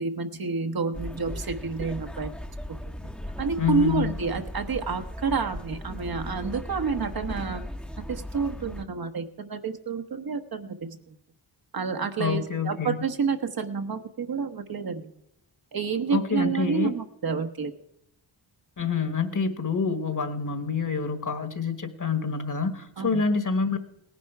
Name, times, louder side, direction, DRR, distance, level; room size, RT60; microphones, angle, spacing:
voice 1, 0.0-2.3 3.4-7.6 8.1-11.2 11.7-15.1 15.7-17.7 23.0-23.2, right 5 dB, 50° right, 6 dB, 1.2 m, -29 dB
sound 1, 0.9-8.8, left 1 dB, ahead, 1.0 m, -37 dB
voice 2, 3.6-4.1 12.2-13.0 16.1-16.9 18.8-23.8, left 5 dB, 40° left, 10 dB, 1.6 m, -27 dB
17.5 x 10.5 x 4.6 m, 0.80 s
cardioid pair, 70°, 47 cm